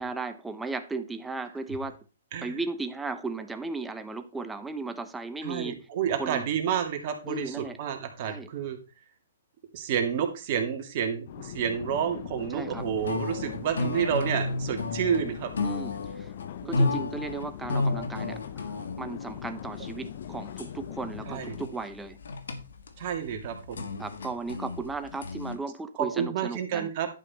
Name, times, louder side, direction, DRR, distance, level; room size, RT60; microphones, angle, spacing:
voice 1, 0.0-2.0 2.4-5.9 6.2-6.4 7.3-7.8 8.2-8.5 12.5-12.8 15.6-16.3 16.6-18.7 19.0-22.2 24.0-26.9, right 3 dB, 5° right, 1.0 m, -35 dB
voice 2, 5.4-8.8 9.7-15.5 16.6-17.0 21.3-21.6 23.0-23.9 26.0-27.1, right 8 dB, 45° right, 2.2 m, -30 dB
sound 1, 11.3-21.7, left 11 dB, 55° left, 0.8 m, -41 dB
sound 2, 12.8-25.6, left 2 dB, 75° left, 1.6 m, -33 dB
11.0 x 5.7 x 4.2 m
hypercardioid pair, 135°, 0 cm